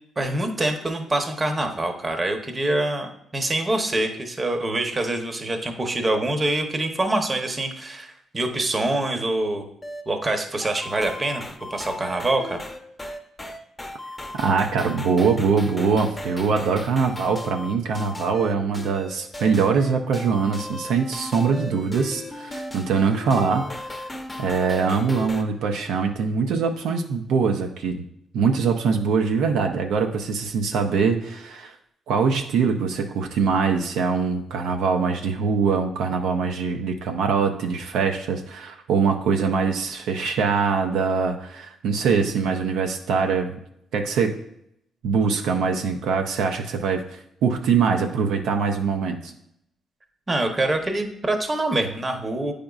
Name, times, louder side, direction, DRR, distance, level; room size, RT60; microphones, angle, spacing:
voice 1, 0.2-9.7 10.1-11.4 11.7-12.6 50.3-52.5, right 2 dB, 25° right, 5 dB, 0.8 m, -25 dB
sound 1, 9.8-25.4, left 1 dB, 10° left, 0.7 m, -36 dB
voice 2, 14.3-24.1 24.4-28.0 28.3-31.7 32.1-43.6 43.9-44.4 45.0-49.3, right 5 dB, 85° right, 3 dB, 0.5 m, -23 dB
8.7 x 5.0 x 2.4 m, 0.74 s
cardioid pair, 90°, 0 cm